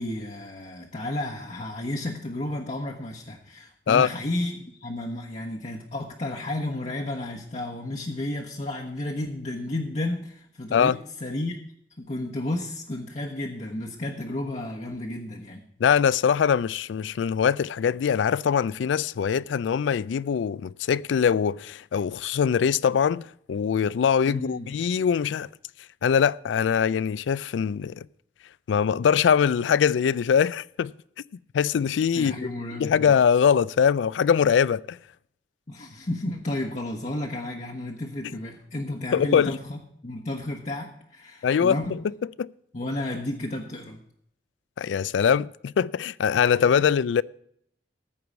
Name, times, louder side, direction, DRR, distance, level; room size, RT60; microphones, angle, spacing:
voice 1, 0.0-10.9 11.2-11.6 12.0-15.6 24.2-24.7 32.1-33.1 35.7-41.9 42.7-44.0, left 1 dB, 40° left, 1.0 m, -32 dB
voice 2, 15.8-25.5 26.0-28.1 28.7-30.9 31.5-32.3 32.8-35.0 39.1-39.6 41.4-42.0 42.4-42.5 44.8-47.2, left 7 dB, 85° left, 0.3 m, -22 dB
14.0 x 4.7 x 8.2 m
head